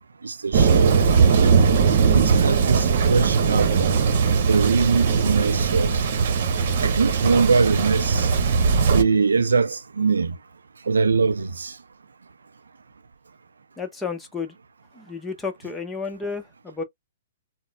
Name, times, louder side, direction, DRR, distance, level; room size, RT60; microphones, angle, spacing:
voice 1, 0.2-1.5 2.1-4.0 4.5-6.0 6.8-8.3 8.9-10.4 10.8-11.8, right 4 dB, 90° right, 0.4 m, -23 dB
Thunder, 0.5-9.0, right 5 dB, 55° right, 0.9 m, -19 dB
voice 2, 13.8-14.5 14.9-16.8, left 5 dB, 10° left, 0.8 m, -32 dB
4.1 x 2.1 x 2.2 m
hypercardioid pair, 135°, 0 cm